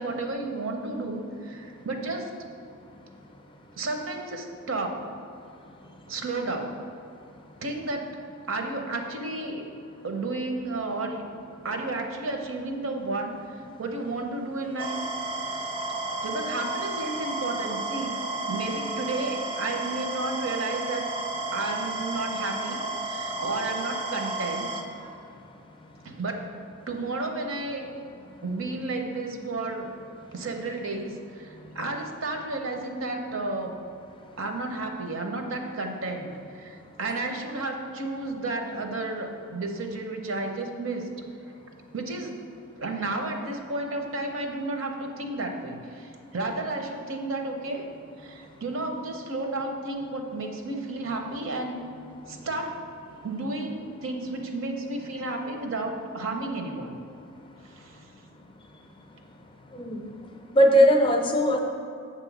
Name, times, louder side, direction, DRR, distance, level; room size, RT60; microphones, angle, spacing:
voice 1, 0.0-2.3 3.8-4.9 6.1-6.8 7.6-8.2 8.5-9.7 10.0-11.2 11.6-13.4 13.8-14.9 15.5-15.6 16.2-18.1 18.5-21.1 21.5-24.7 26.0-26.5 26.9-27.9 28.4-29.9 30.3-33.8 34.4-41.1 41.9-42.4 42.8-47.9 48.2-51.8 52.3-52.7 53.2-57.0 57.6-58.0, right 2 dB, 70° right, 4 dB, 0.7 m, -32 dB
sound 1, 14.8-24.8, right 2 dB, 25° right, 0.4 m, -32 dB
voice 2, 60.5-61.6, equal, 25° left, 3 dB, 0.5 m, -19 dB
7.4 x 3.0 x 5.9 m, 2.6 s
head